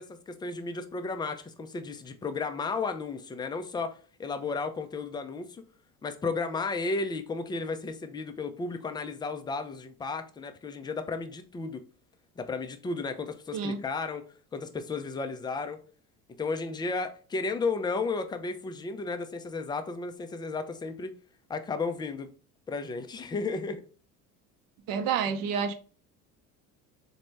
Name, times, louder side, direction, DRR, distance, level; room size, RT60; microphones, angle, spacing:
voice 1, 0.0-5.6 6.0-11.8 12.4-14.3 14.5-15.8 16.4-21.1 21.5-22.3 22.7-23.8, left 4 dB, 10° left, 0.3 m, -33 dB
voice 2, 24.9-25.7, right 7 dB, 55° right, 0.7 m, -28 dB
4.0 x 2.2 x 3.1 m
hypercardioid pair, 70°, 43 cm